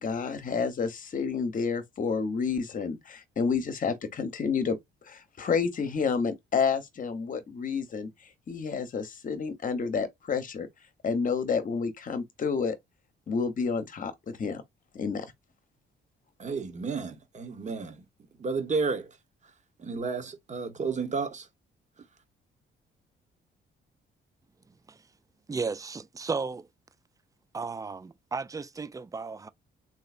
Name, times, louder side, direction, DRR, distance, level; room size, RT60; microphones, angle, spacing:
voice 1, 0.0-4.8 5.0-8.1 8.5-10.7 11.0-12.8 13.3-14.6 14.9-15.3, left 5 dB, 40° left, 0.9 m, -29 dB
voice 2, 16.4-18.0 18.3-19.2 19.8-21.5, right 4 dB, 35° right, 1.0 m, -32 dB
voice 3, 25.5-26.7 27.5-29.5, right 4 dB, 15° right, 0.3 m, -34 dB
3.2 x 2.7 x 2.4 m
cardioid pair, 90°, 20 cm